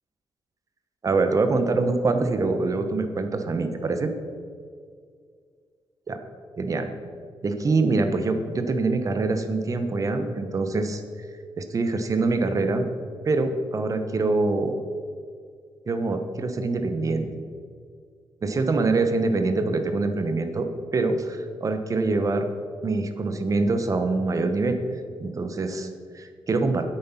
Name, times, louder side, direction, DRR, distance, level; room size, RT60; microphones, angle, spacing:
voice 1, 1.0-4.1 6.1-6.2 6.6-6.9 7.4-11.0 11.6-12.9 13.2-14.8 15.9-17.4 18.4-22.5 22.8-24.8 25.2-26.8, right 3 dB, 40° right, 8 dB, 1.1 m, -24 dB
9.9 x 8.5 x 5.8 m, 2.1 s
cardioid pair, 115°, 9 cm